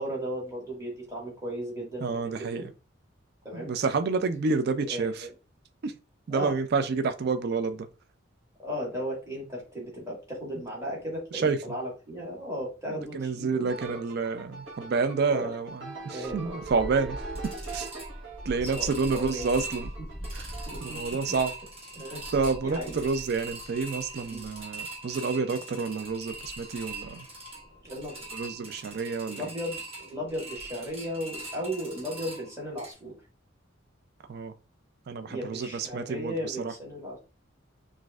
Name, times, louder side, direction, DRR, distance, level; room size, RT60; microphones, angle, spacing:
voice 1, 0.0-2.7 3.4-3.7 4.9-5.3 6.3-6.5 8.6-14.0 15.3-15.5 15.9-16.6 18.6-19.5 20.7-21.0 22.0-22.3 22.6-23.1 24.3-24.4 27.8-28.3 29.3-33.1 35.3-37.2, equal, 15° right, 1.7 m, -36 dB
voice 2, 2.0-2.7 3.5-5.3 5.8-5.9 6.3-7.9 11.3-11.6 12.9-17.2 17.7-17.9 18.5-19.9 20.3-20.5 20.8-21.5 22.3-27.2 28.3-29.5 34.3-34.5 35.1-36.7, right 4 dB, 55° right, 0.4 m, -29 dB
sound 1, 13.7-20.9, right 4 dB, 75° right, 1.1 m, -42 dB
sound 2, 16.2-32.9, right 1 dB, 30° right, 1.2 m, -41 dB
6.0 x 2.5 x 2.4 m
head